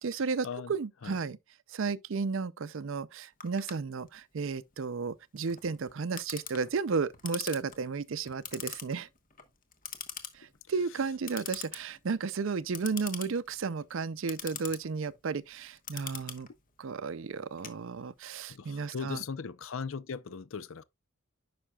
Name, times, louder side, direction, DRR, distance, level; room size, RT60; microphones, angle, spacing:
voice 1, 0.0-1.4 1.7-9.1 10.3-16.5 16.8-19.2, right 5 dB, 60° right, 0.5 m, -33 dB
Clock, 3.4-18.3, left 8 dB, 40° left, 1.1 m, -44 dB
voice 2, 18.5-20.8, left 5 dB, 65° left, 0.5 m, -38 dB
9.9 x 5.9 x 2.3 m
head